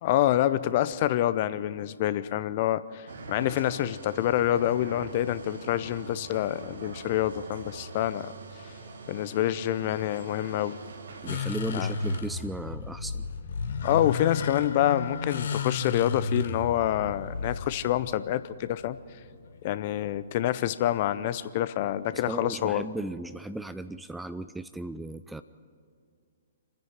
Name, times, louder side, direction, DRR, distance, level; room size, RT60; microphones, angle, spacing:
voice 1, 0.0-3.0 3.3-8.3 9.1-10.8 11.7-11.9 13.8-19.0 19.6-22.9, left 12 dB, 40° left, 15 dB, 0.7 m, -27 dB
sound 1, 3.1-12.2, right 4 dB, 60° right, 2.1 m, -43 dB
voice 2, 11.2-13.2 22.1-25.4, right 2 dB, 5° right, 12 dB, 0.4 m, -36 dB
sound 2, 11.3-19.6, left 4 dB, 55° left, 1.5 m, -33 dB
27.0 x 10.5 x 9.5 m, 2.1 s
figure-of-eight pair, 125°, 0 cm